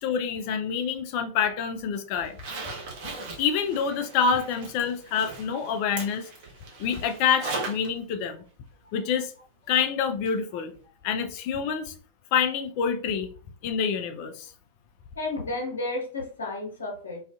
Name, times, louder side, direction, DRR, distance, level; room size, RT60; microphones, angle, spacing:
voice 1, 0.0-2.4 3.4-6.3 6.8-8.4 8.9-9.3 9.7-10.7 11.0-11.9 12.3-13.3 13.6-14.5, left 7 dB, 45° left, 7 dB, 0.3 m, -27 dB
Zipper (clothing), 2.2-7.9 8.2-8.3 10.2-10.3 10.7-10.8, right 3 dB, 50° right, 0.7 m, -38 dB
voice 2, 15.2-17.2, left 2 dB, 70° left, 0 dB, 0.8 m, -32 dB
2.4 x 2.4 x 2.3 m, 0.42 s
figure-of-eight pair, 90°, 0 cm